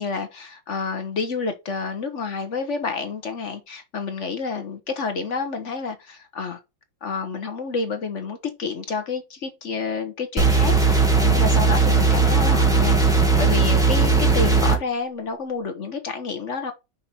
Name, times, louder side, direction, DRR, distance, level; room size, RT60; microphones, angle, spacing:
voice 1, 0.0-6.6 7.0-16.7, left 4 dB, 50° left, 1.0 m, -29 dB
sound 1, 10.4-14.8, right 4 dB, ahead, 1.2 m, -18 dB
5.7 x 5.2 x 4.2 m
omnidirectional pair, 2.1 m